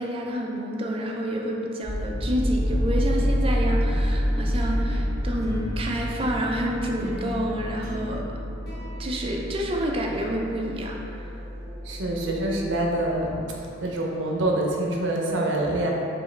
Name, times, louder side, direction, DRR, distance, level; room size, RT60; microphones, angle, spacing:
voice 1, 0.0-8.3 9.0-11.2, equal, 30° right, 0 dB, 0.4 m, -29 dB
sound 1, 1.8-13.8, equal, ahead, 1.3 m, -28 dB
sound 2, 4.6-10.2, equal, 55° left, 0.9 m, -38 dB
voice 2, 11.8-13.4 13.8-15.9, right 1 dB, 70° right, -1 dB, 0.6 m, -25 dB
4.6 x 2.9 x 3.2 m, 2.7 s
head